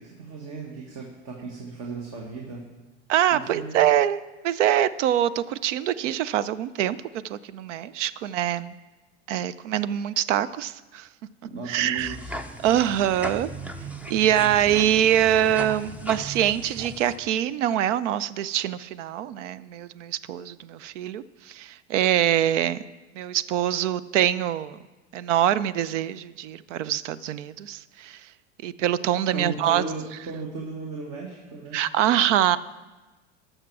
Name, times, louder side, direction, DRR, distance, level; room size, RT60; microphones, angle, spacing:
voice 1, 0.0-2.7 3.3-3.7 11.4-12.3 29.3-31.8, right 3 dB, 45° right, 0 dB, 1.6 m, -36 dB
voice 2, 3.1-7.0 7.2-8.8 9.3-11.1 11.7-12.2 12.6-13.5 14.1-22.8 23.2-24.8 25.1-28.3 28.6-29.8 31.7-32.6, right 11 dB, 80° right, 18 dB, 0.5 m, -24 dB
sound 1, 12.0-17.2, right 1 dB, 5° right, 0.4 m, -37 dB
12.0 x 6.6 x 4.7 m, 1.2 s
hypercardioid pair, 110°, 36 cm